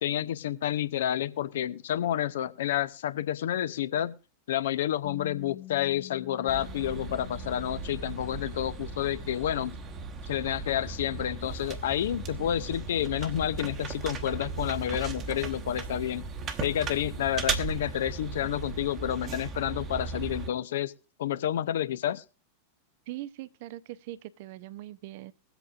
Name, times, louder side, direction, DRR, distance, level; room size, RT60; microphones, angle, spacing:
voice 1, 0.0-4.1 4.5-9.8 10.3-16.3 16.6-20.9 21.2-22.2, left 11 dB, 60° left, 0.6 m, -30 dB
Bass guitar, 5.0-11.3, left 15 dB, 10° left, 1.4 m, -48 dB
sound 1, 6.5-20.5, right 5 dB, 30° right, 1.0 m, -37 dB
voice 2, 23.1-25.3, right 15 dB, 50° right, 0.5 m, -41 dB
21.0 x 8.0 x 2.4 m
figure-of-eight pair, 90°, 0 cm